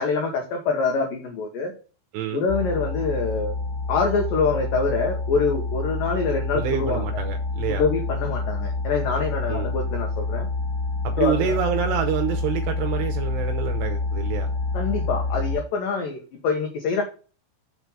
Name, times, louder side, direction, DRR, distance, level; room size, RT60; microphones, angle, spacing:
voice 1, 0.0-1.7 2.3-3.6 3.9-7.0 7.7-10.5 11.2-11.6 14.7-17.0, left 4 dB, 90° left, 1.9 m, -25 dB
voice 2, 2.1-2.4 6.5-7.8 9.5-9.8 11.0-14.5, right 9 dB, 80° right, 2.5 m, -27 dB
sound 1, 2.5-15.6, left 3 dB, 70° left, 3.4 m, -28 dB
6.7 x 4.7 x 5.4 m
omnidirectional pair, 5.6 m